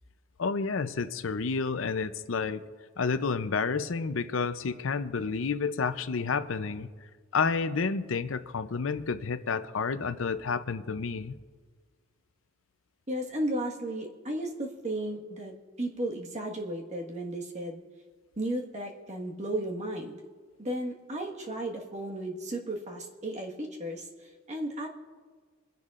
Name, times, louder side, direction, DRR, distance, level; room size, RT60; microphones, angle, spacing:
voice 1, 0.4-2.6 3.0-6.9 7.3-11.3, left 5 dB, 75° left, 11 dB, 0.6 m, -30 dB
voice 2, 13.1-17.8 18.4-20.2 20.6-24.9, right 1 dB, 35° right, 0 dB, 1.5 m, -34 dB
26.0 x 10.5 x 2.5 m, 1.5 s
head